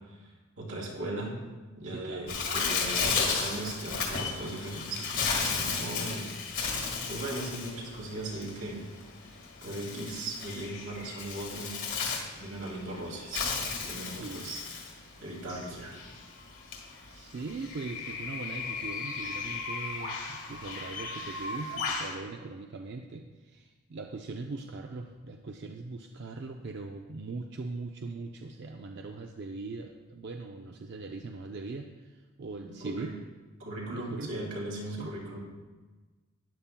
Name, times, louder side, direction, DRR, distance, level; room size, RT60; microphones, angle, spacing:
voice 1, 0.6-1.4 1.8-8.8 9.6-11.8 12.4-13.5 13.8-14.6 15.2-16.0 32.8-33.1 33.6-35.4, right 1 dB, 85° right, -3 dB, 2.6 m, -38 dB
voice 2, 1.8-2.4 14.0-14.5 17.1-33.1 33.9-34.5 34.9-35.1, right 3 dB, 55° right, 3 dB, 0.4 m, -41 dB
Bird, 2.3-22.1, left 5 dB, 60° left, 1.7 m, -34 dB
12.5 x 10.0 x 2.2 m, 1.3 s
head